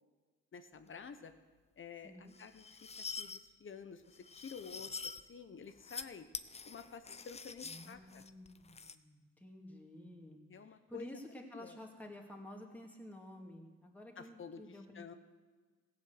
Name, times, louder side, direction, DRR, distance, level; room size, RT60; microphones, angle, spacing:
voice 1, 0.5-1.3 1.8-6.3 6.7-8.2 10.5-11.1 11.5-11.8 14.2-15.1, left 6 dB, 40° left, 9 dB, 1.2 m, -51 dB
voice 2, 2.0-2.3 7.6-15.2, left 1 dB, 5° left, 0 dB, 2.5 m, -52 dB
sound 1, 2.3-3.4 4.1-5.2 5.7-6.0 6.3-9.0, left 4 dB, 20° left, 0.6 m, -46 dB
16.0 x 7.4 x 8.0 m, 1.4 s
cardioid pair, 90°, 30 cm